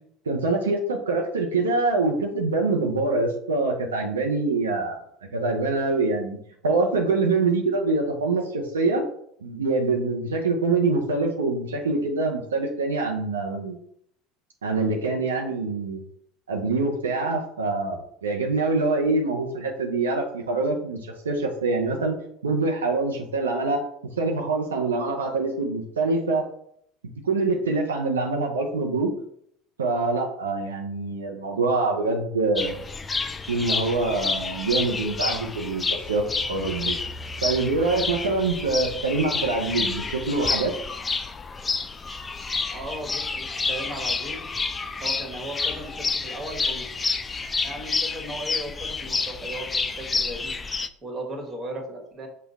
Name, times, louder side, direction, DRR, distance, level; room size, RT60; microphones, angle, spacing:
voice 1, 0.3-5.1 5.3-6.4 6.6-9.0 9.4-13.8 14.6-16.0 16.5-22.2 22.4-23.8 24.2-26.4 27.2-29.1 29.8-32.8 33.5-37.0 37.4-40.7, right 3 dB, 85° right, 1 dB, 0.5 m, -25 dB
sound 1, 32.6-50.9, left 4 dB, 25° left, 0.3 m, -29 dB
voice 2, 42.7-44.4 45.0-46.9 47.6-50.5 51.0-52.3, right 1 dB, 30° right, 1 dB, 1.4 m, -36 dB
5.2 x 2.2 x 4.0 m, 0.69 s
hypercardioid pair, 75°, 0 cm